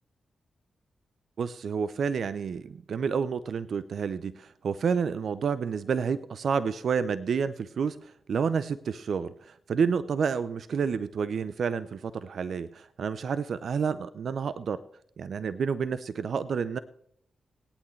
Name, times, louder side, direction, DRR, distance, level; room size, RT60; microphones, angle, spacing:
voice 1, 1.4-14.8 15.2-16.8, right 6 dB, 70° right, 14 dB, 0.5 m, -29 dB
24.5 x 8.8 x 3.2 m, 0.68 s
supercardioid pair, 40°, 0 cm